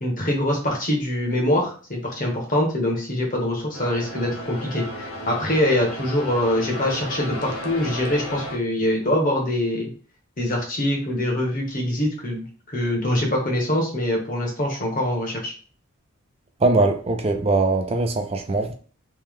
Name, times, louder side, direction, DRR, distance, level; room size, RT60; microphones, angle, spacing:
voice 1, 0.0-9.9 10.4-15.5, left 1 dB, 40° left, 1.1 m, -24 dB
sound 1, 3.7-8.6, equal, 80° left, 0.7 m, -34 dB
voice 2, 16.6-18.7, right 2 dB, 25° right, 0.4 m, -21 dB
3.2 x 2.8 x 3.6 m
head